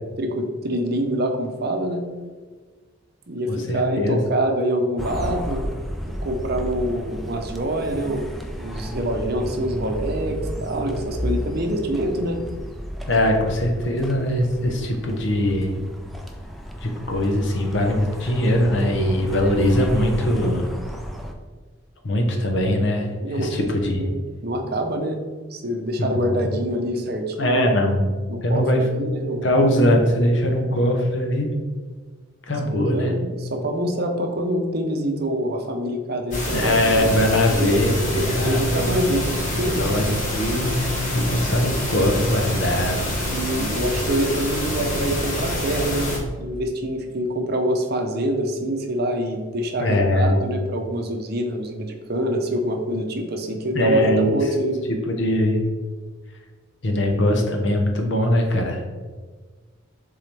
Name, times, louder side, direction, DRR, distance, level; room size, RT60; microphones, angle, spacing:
voice 1, 0.2-2.0 3.3-5.6 6.0-8.3 8.6-12.4 23.1-25.2 25.5-27.7 28.3-29.4 32.7-37.2 37.5-37.7 38.1-39.3 39.5-39.9 43.3-54.8, right 1 dB, 50° right, 4 dB, 0.7 m, -26 dB
voice 2, 3.7-4.2 13.1-15.7 16.8-20.7 22.0-23.1 23.4-24.1 26.0-26.1 27.4-28.0 28.4-28.8 29.4-31.5 32.5-33.1 36.5-39.0 39.5-43.2 49.8-50.4 53.7-54.4 54.9-55.6 56.8-58.8, left 1 dB, 60° left, 2 dB, 1.0 m, -21 dB
sound 1, 5.0-21.3, equal, ahead, 0.4 m, -33 dB
sound 2, 36.3-46.2, left 1 dB, 40° left, 1.4 m, -26 dB
7.2 x 3.8 x 3.4 m, 1.4 s
head